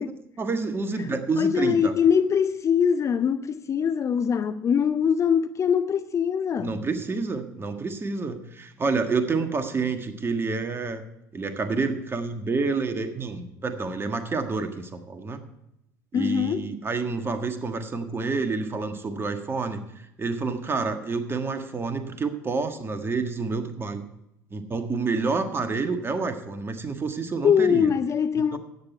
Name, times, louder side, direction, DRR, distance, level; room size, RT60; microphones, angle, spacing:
voice 1, 0.0-1.9 6.6-11.0 11.3-15.4 16.1-24.1 24.5-27.9 28.4-28.6, right 4 dB, 25° right, 1.5 m, -28 dB
voice 2, 1.4-6.8 16.1-16.7 27.4-28.6, left 7 dB, 30° left, 0.6 m, -23 dB
13.5 x 9.0 x 4.5 m
figure-of-eight pair, 65°, 10 cm